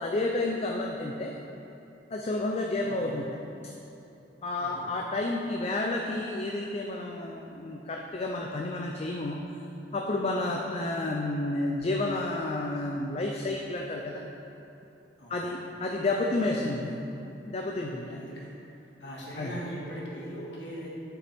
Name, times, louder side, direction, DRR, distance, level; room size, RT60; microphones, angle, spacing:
voice 1, 0.0-1.3 2.1-3.4 4.4-9.4 9.9-14.2 15.3-16.8 17.4-18.2 19.4-19.5, left 2 dB, 35° left, 1 dB, 0.4 m, -30 dB
voice 2, 2.8-3.1 4.6-4.9 15.2-15.5 16.2-16.8 18.1-18.6 19.0-20.9, equal, 85° left, -5 dB, 1.8 m, -40 dB
8.6 x 7.0 x 3.4 m, 2.9 s
head